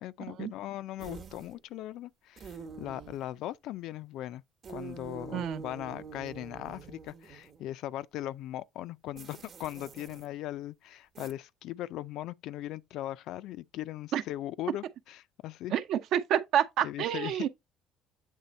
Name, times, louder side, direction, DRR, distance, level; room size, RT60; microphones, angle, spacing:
voice 1, 0.0-4.4 4.7-15.7 16.8-17.5, left 13 dB, 65° left, 0.4 m, -39 dB
sound 1, 1.0-1.6 2.4-3.3 4.6-7.6 9.2-10.3 11.1-11.3, right 5 dB, 35° right, 1.0 m, -46 dB
voice 2, 5.3-5.6 14.1-14.2 15.7-17.5, right 10 dB, 60° right, 0.8 m, -28 dB
8.2 x 3.4 x 4.1 m
cardioid pair, 125°, 0 cm